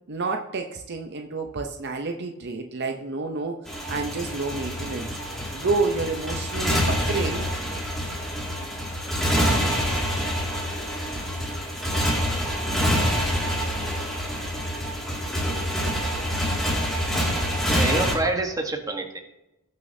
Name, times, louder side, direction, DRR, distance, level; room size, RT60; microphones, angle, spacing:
voice 1, 0.1-3.6 3.9-5.1 5.5-7.5, right 3 dB, 50° right, 4 dB, 0.7 m, -29 dB
Motorcycle, 3.7-18.1, equal, ahead, 2.2 m, -26 dB
voice 2, 17.7-19.2, right 2 dB, 15° right, 3 dB, 1.2 m, -27 dB
19.0 x 6.4 x 2.7 m, 0.93 s
head